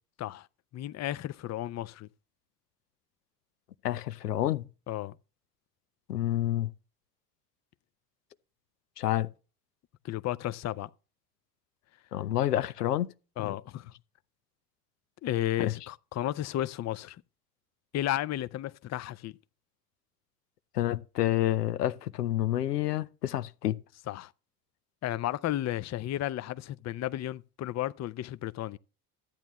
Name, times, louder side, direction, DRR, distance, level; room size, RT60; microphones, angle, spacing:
voice 1, 0.7-2.1 4.9-5.2 10.0-10.9 13.4-13.9 15.2-17.2 17.9-19.4 24.1-24.3 25.0-28.8, left 13 dB, 35° left, 0.6 m, -33 dB
voice 2, 3.8-4.6 6.1-6.7 9.0-9.3 12.1-13.1 13.4-13.5 15.6-15.7 20.7-23.8, left 13 dB, 90° left, 0.7 m, -29 dB
13.5 x 9.2 x 3.1 m
hypercardioid pair, 65°, 46 cm